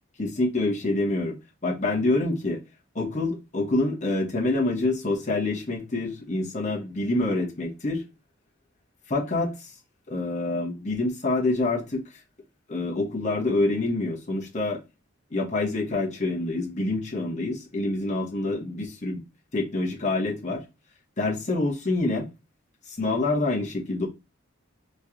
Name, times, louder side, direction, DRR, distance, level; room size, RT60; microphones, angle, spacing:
voice 1, 0.2-2.6 2.9-8.0 9.1-9.7 10.1-12.0 12.7-14.8 15.3-19.2 19.5-20.6 21.2-22.3 22.9-24.1, left 2 dB, 35° left, 1.0 m, -26 dB
3.1 x 3.0 x 3.6 m
head